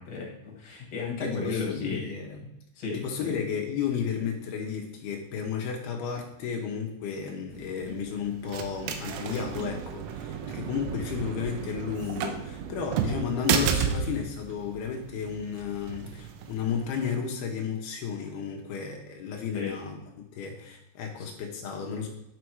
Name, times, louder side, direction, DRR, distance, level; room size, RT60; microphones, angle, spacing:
voice 1, 0.0-2.0 2.8-3.3 19.5-19.7 21.2-21.3, left 4 dB, 50° left, -2 dB, 2.0 m, -34 dB
voice 2, 1.2-2.5 2.9-20.0 20.3-22.1, left 7 dB, 80° left, 1 dB, 2.2 m, -33 dB
heavy door open close inside, 7.5-17.2, right 7 dB, 85° right, 3.4 m, -33 dB
10.0 x 6.4 x 4.6 m, 0.87 s
omnidirectional pair, 6.0 m